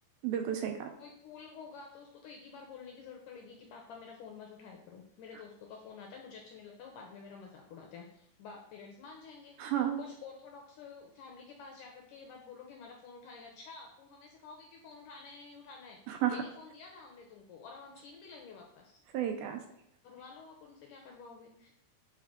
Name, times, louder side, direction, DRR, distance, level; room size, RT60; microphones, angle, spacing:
voice 1, 0.2-0.9 9.6-10.0 16.1-16.4 19.1-19.6, right 10 dB, 80° right, 5 dB, 2.3 m, -32 dB
voice 2, 1.0-19.0 20.0-21.7, left 5 dB, 80° left, 1 dB, 1.9 m, -50 dB
7.4 x 4.6 x 3.7 m, 0.76 s
omnidirectional pair, 4.5 m